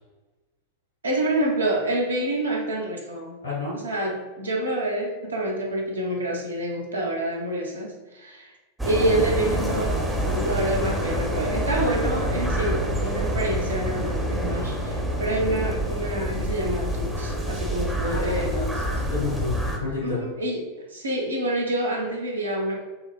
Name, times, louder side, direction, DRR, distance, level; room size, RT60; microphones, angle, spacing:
voice 1, 1.0-3.4 3.8-8.6 8.8-18.8 20.0-22.8, right 1 dB, 75° right, -1 dB, 0.8 m, -27 dB
voice 2, 3.4-3.8 18.1-20.2, left 3 dB, 75° left, -8 dB, 1.3 m, -31 dB
sound 1, 8.8-19.8, equal, 10° right, 0.6 m, -27 dB
5.4 x 2.0 x 2.3 m, 1.2 s
figure-of-eight pair, 90°, 0 cm